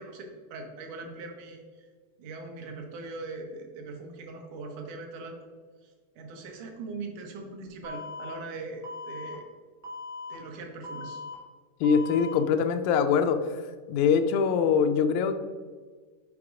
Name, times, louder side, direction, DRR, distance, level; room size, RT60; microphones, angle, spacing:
voice 1, 0.0-1.9 2.2-5.4 5.8-9.5 10.3-11.2, right 3 dB, 70° right, 3 dB, 2.2 m, -41 dB
Alarm, 7.8-8.3 8.8-9.3 9.8-10.3 10.8-11.3 11.8-12.3, left 3 dB, 5° right, 0.7 m, -39 dB
voice 2, 11.8-13.6 13.9-15.3, left 6 dB, 85° left, 7 dB, 1.7 m, -23 dB
6.1 x 4.6 x 4.8 m, 1.5 s
omnidirectional pair, 3.9 m